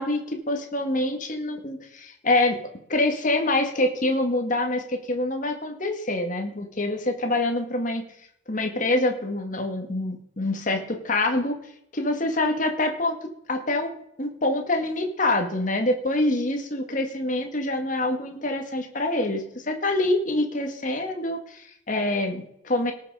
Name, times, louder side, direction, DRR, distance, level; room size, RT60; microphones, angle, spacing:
voice 1, 0.0-2.6 2.9-8.0 8.5-11.6 11.9-13.2 13.5-22.9, left 2 dB, 40° left, 4 dB, 1.9 m, -26 dB
18.5 x 6.6 x 4.9 m, 0.73 s
head